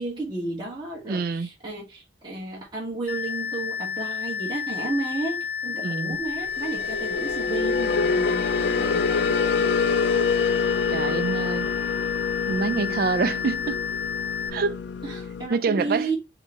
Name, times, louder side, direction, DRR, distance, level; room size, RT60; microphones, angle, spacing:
voice 1, 0.0-9.7 15.0-16.2, right 2 dB, 25° right, 1.2 m, -33 dB
voice 2, 1.1-1.5 5.8-6.2 10.9-11.7 12.5-13.8 14.5-14.8 15.5-16.1, right 4 dB, 55° right, 0.3 m, -26 dB
sound 1, 3.1-14.5, left 7 dB, 55° left, 0.8 m, -31 dB
sound 2, 6.4-15.5, left 5 dB, 70° left, 0.3 m, -26 dB
4.9 x 2.2 x 4.0 m
head